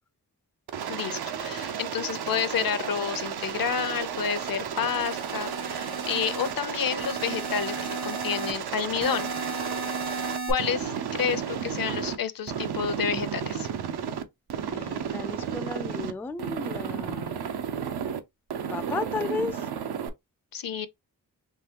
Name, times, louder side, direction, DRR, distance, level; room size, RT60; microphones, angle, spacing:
Aircraft, 0.7-12.2 12.5-14.2 14.5-16.1 16.4-18.2 18.5-20.1, right 8 dB, 85° right, 0.6 m, -33 dB
voice 1, 0.9-7.8 8.0-9.3 10.5-13.7 20.5-20.9, left 7 dB, 65° left, 0.7 m, -30 dB
sound 1, 3.4-4.5 5.0-6.5 7.0-8.5 9.0-10.5, right 3 dB, 70° right, 1.2 m, -36 dB
voice 2, 14.6-17.5 18.7-19.6, left 4 dB, 5° left, 0.3 m, -34 dB
3.8 x 2.8 x 2.9 m
cardioid pair, 55°, 38 cm